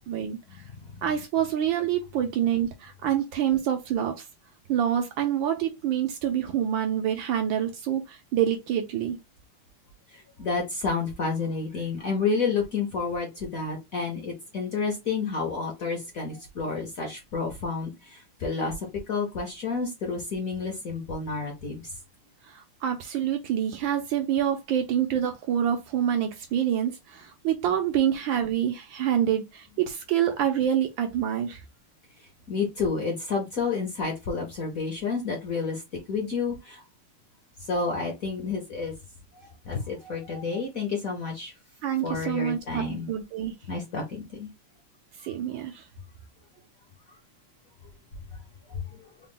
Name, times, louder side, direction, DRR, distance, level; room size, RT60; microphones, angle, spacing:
voice 1, 0.1-0.6 1.0-4.3 4.7-9.2 22.4-31.6 41.8-43.5 45.2-45.8, right 10 dB, 75° right, 1.2 m, -27 dB
voice 2, 10.1-21.9 32.5-35.8 36.1-36.8 37.6-38.9 39.6-41.5 42.0-43.1 43.7-44.5 48.3-48.4 48.7-48.8, left 4 dB, 55° left, 1.0 m, -30 dB
3.9 x 2.2 x 3.7 m
omnidirectional pair, 2.4 m